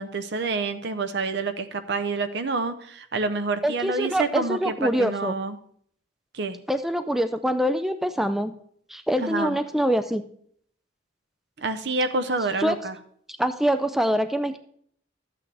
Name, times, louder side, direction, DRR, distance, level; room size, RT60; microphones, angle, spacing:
voice 1, 0.0-5.6 6.3-6.6 9.2-9.6 11.6-13.0, right 3 dB, 60° right, 10 dB, 0.8 m, -28 dB
voice 2, 3.6-5.3 6.7-8.5 8.9-10.2 12.6-12.8 13.4-14.6, equal, ahead, 9 dB, 0.4 m, -24 dB
13.0 x 8.5 x 3.4 m, 0.64 s
head